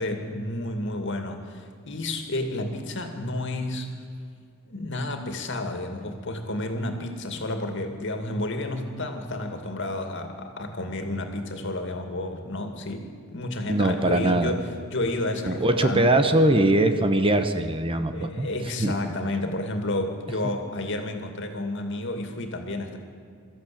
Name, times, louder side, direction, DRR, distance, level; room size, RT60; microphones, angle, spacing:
voice 1, 0.0-3.9 4.7-14.6 14.9-16.1 18.1-23.0, left 1 dB, 60° left, 5 dB, 2.4 m, -31 dB
voice 2, 13.7-14.5 15.5-18.5 18.8-19.1, right 1 dB, 25° right, 8 dB, 1.0 m, -22 dB
23.0 x 14.0 x 8.7 m, 2.2 s
head